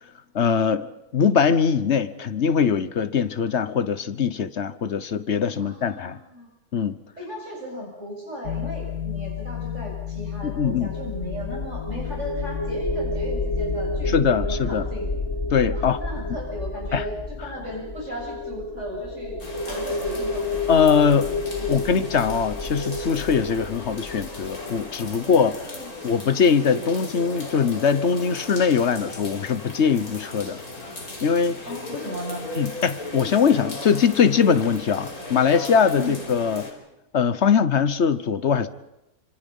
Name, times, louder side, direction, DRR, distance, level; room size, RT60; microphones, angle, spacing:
voice 1, 0.3-0.9 1.1-6.2 6.7-7.0 10.4-10.9 14.1-14.9 15.5-16.0 16.9-17.0 20.7-21.3 21.7-25.6 26.0-30.6 31.2-31.6 32.5-36.7 37.1-38.7, left 6 dB, 50° left, 1.2 m, -21 dB
voice 2, 5.5-6.5 7.2-15.1 15.7-19.4 19.7-21.9 25.1-25.9 31.7-32.5 36.0-36.3, equal, 45° right, 7.2 m, -36 dB
sound 1, 8.4-14.2, left 10 dB, 80° left, 1.6 m, -33 dB
sound 2, 10.5-25.5, left 2 dB, 25° left, 0.6 m, -30 dB
sound 3, 19.4-36.7, left 2 dB, 65° left, 4.0 m, -36 dB
26.0 x 26.0 x 5.5 m
omnidirectional pair, 1.7 m